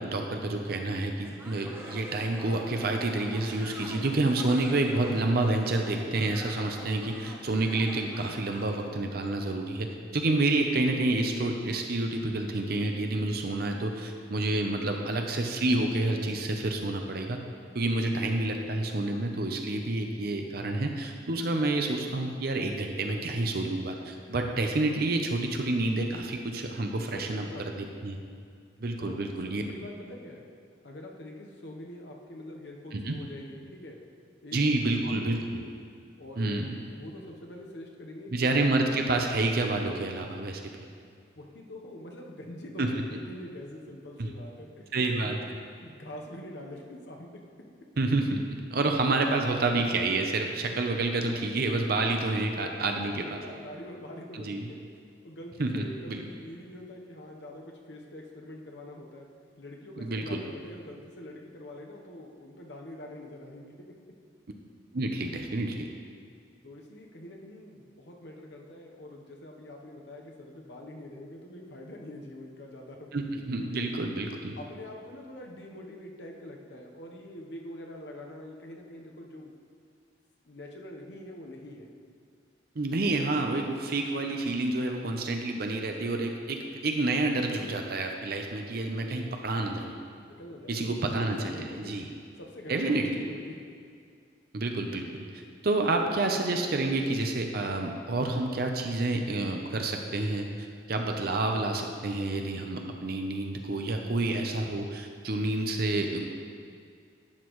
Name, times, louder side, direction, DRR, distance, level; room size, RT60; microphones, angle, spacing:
voice 1, 0.0-17.4 17.7-27.5 27.8-28.2 28.8-29.6 32.9-33.2 34.5-35.6 36.4-36.8 38.3-40.7 42.8-42.9 44.2-44.3 44.9-45.3 48.0-48.4 48.7-53.2 54.3-54.6 55.6-56.2 60.0-60.4 64.9-65.9 73.1-74.6 82.8-89.9 90.7-92.1 92.7-93.1 94.5-95.1 95.3-106.3, right 2 dB, 55° right, 3 dB, 0.7 m, -29 dB
sound 1, 1.2-8.8, right 1 dB, 10° right, 1.0 m, -45 dB
voice 2, 27.1-28.0 29.0-30.4 30.8-34.0 34.4-35.7 36.2-38.8 41.4-45.5 45.8-47.4 52.6-54.9 55.2-59.3 59.6-64.0 66.6-74.0 74.6-79.5 80.4-81.9 90.4-91.1 91.4-93.6, left 1 dB, 70° left, 0 dB, 1.0 m, -44 dB
11.5 x 8.2 x 3.1 m, 2.2 s
head